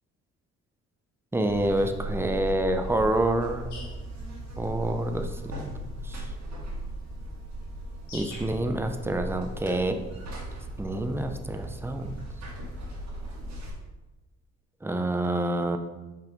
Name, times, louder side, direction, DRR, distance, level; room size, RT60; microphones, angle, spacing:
voice 1, 1.3-3.7 4.6-5.7 6.0-6.3 8.1-10.0 10.8-12.2 14.8-15.8, right 1 dB, 10° right, 6 dB, 0.6 m, -27 dB
Buzz, 1.5-13.7, right 1 dB, 65° right, 2.2 m, -37 dB
sound 1, 3.7-11.2, left 2 dB, 85° left, 1.7 m, -51 dB
5.6 x 5.3 x 3.9 m, 1.1 s
cardioid pair, 90°, 30 cm